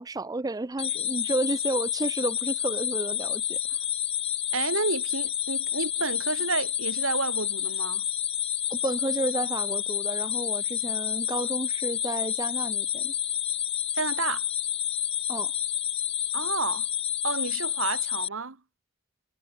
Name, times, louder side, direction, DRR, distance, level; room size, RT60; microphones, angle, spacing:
voice 1, 0.0-3.8 8.7-13.1 15.3-15.5, right 2 dB, 15° right, 0.4 m, -31 dB
sound 1, 0.8-18.3, left 11 dB, 30° left, 0.7 m, -29 dB
voice 2, 4.5-8.0 13.9-14.4 16.3-16.9 17.2-18.6, right 4 dB, 70° right, 1.5 m, -30 dB
head